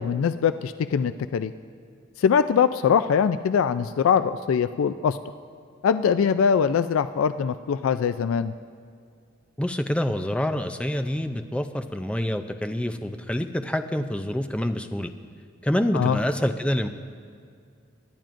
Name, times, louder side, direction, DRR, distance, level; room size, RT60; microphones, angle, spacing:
voice 1, 0.0-1.5 2.2-5.2 5.8-8.5 15.9-16.2, left 7 dB, 80° left, 12 dB, 0.3 m, -22 dB
voice 2, 9.6-15.1 15.6-16.9, left 1 dB, 5° left, 8 dB, 0.4 m, -26 dB
25.0 x 10.5 x 2.5 m, 2.2 s
head